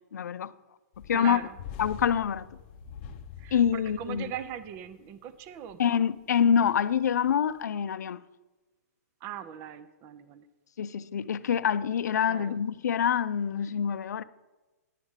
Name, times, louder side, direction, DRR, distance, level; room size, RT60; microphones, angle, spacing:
voice 1, 0.1-0.5 1.0-1.4 1.8-2.5 3.5-4.3 5.8-8.2 10.8-14.2, left 8 dB, 80° left, 0.5 m, -26 dB
sound 1, 0.9-5.1 5.6-5.7 6.4-7.1 7.5-7.6, left 7 dB, 35° left, 0.7 m, -45 dB
voice 2, 1.1-1.6 3.4-6.0 9.2-10.4 12.3-12.6, right 10 dB, 25° right, 0.5 m, -40 dB
10.5 x 4.9 x 8.0 m
hypercardioid pair, 155°, 9 cm